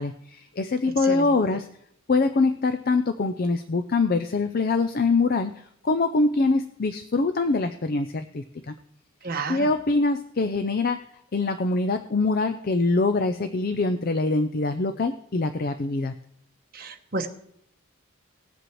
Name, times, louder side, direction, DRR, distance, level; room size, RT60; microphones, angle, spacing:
voice 1, 0.0-1.7 2.1-8.7 9.5-16.1, left 3 dB, 45° left, 9 dB, 0.5 m, -24 dB
voice 2, 1.0-1.3 9.2-9.7 16.7-17.3, right 3 dB, 45° right, 5 dB, 1.0 m, -31 dB
19.5 x 7.6 x 3.2 m, 0.70 s
head